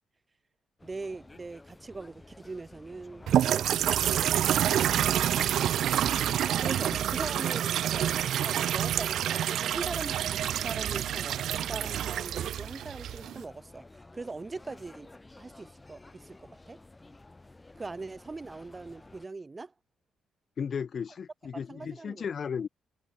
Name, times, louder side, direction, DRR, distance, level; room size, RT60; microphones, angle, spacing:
sound 1, 0.8-19.3, left 2 dB, 15° left, 7.4 m, -52 dB
voice 1, 0.8-4.4 6.6-15.1 15.4-16.8 17.8-19.7 21.7-22.2, right 3 dB, 25° right, 3.6 m, -41 dB
sound 2, 3.3-13.4, right 11 dB, 70° right, 0.9 m, -28 dB
voice 2, 5.4-5.8 20.6-22.7, left 6 dB, 50° left, 0.6 m, -35 dB
cardioid pair, 90°, 0 cm